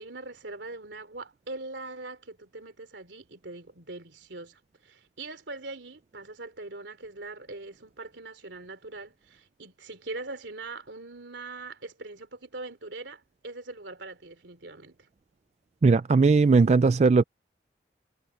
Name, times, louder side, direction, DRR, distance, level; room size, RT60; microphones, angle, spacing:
voice 1, 0.0-15.1, right 2 dB, 85° right, 2.9 m, -42 dB
voice 2, 15.8-17.2, right 4 dB, 40° right, 0.3 m, -19 dB
head